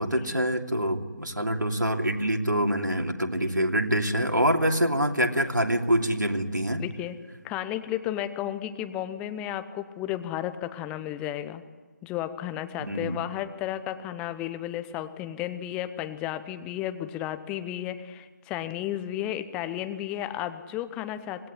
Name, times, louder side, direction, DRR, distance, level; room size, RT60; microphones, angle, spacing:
voice 1, 0.0-6.8 12.9-13.2, equal, 90° right, 4 dB, 3.0 m, -25 dB
voice 2, 6.8-7.2 7.4-11.6 12.0-21.5, left 12 dB, 10° left, 10 dB, 0.8 m, -33 dB
25.5 x 19.5 x 9.9 m, 1.4 s
figure-of-eight pair, 155°, 10 cm